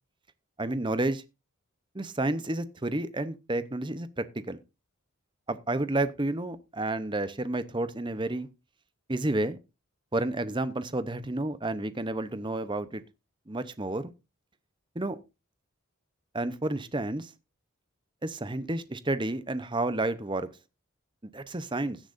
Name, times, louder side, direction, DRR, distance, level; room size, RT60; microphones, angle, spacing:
voice 1, 0.6-1.2 1.9-4.6 5.5-8.5 9.1-9.6 10.1-13.0 13.5-14.1 14.9-15.2 16.3-17.3 18.2-20.5 21.3-22.0, right 2 dB, 20° right, 0.8 m, -30 dB
16.5 x 10.0 x 2.6 m
head